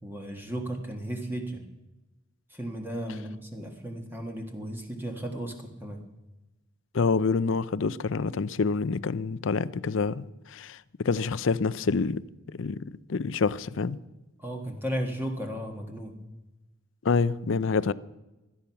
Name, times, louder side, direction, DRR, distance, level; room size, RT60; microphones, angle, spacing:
voice 1, 0.0-1.6 2.5-6.0 14.4-16.2, right 1 dB, 10° right, 1.5 m, -35 dB
voice 2, 6.9-12.2 12.5-14.0 17.0-17.9, left 4 dB, 60° left, 0.5 m, -27 dB
17.0 x 12.5 x 5.8 m
head